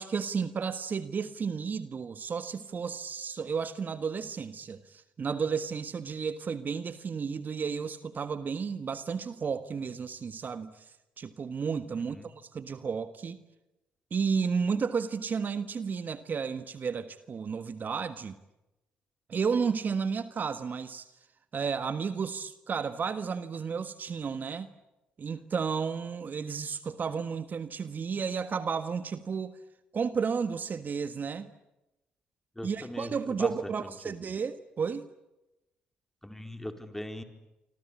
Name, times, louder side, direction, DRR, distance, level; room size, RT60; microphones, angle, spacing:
voice 1, 0.0-10.8 11.2-13.4 14.1-18.4 19.3-21.1 21.5-24.7 25.2-29.6 29.9-31.5 32.6-35.0, right 6 dB, 45° right, 12 dB, 1.5 m, -32 dB
voice 2, 32.6-33.7 34.0-34.4 36.2-37.2, left 1 dB, 10° left, 7 dB, 4.5 m, -40 dB
26.5 x 26.0 x 8.6 m, 0.95 s
hypercardioid pair, 50°, 4 cm